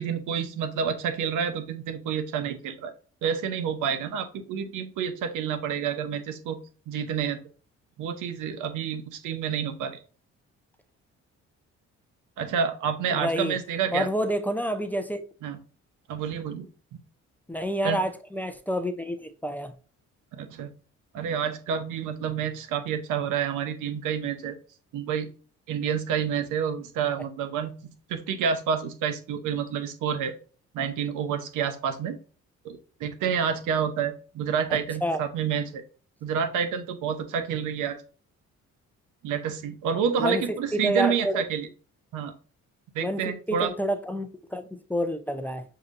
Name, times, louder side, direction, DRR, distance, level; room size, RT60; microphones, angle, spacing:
voice 1, 0.0-2.9 3.2-6.6 6.9-7.4 8.0-10.0 12.4-14.1 15.4-15.6 16.1-17.0 17.8-18.0 20.3-20.7 21.1-24.6 24.9-25.3 25.7-27.7 28.1-30.3 30.7-32.2 32.6-35.8 36.2-38.0 39.2-41.7 42.1-42.3 42.9-43.7, right 7 dB, 85° right, 0.8 m, -29 dB
voice 2, 13.1-13.5 13.9-15.3 17.5-19.7 35.0-35.2 40.2-40.4 40.7-41.4 43.0-45.6, equal, 5° left, 0.5 m, -28 dB
6.6 x 2.8 x 2.5 m
cardioid pair, 90°, 30 cm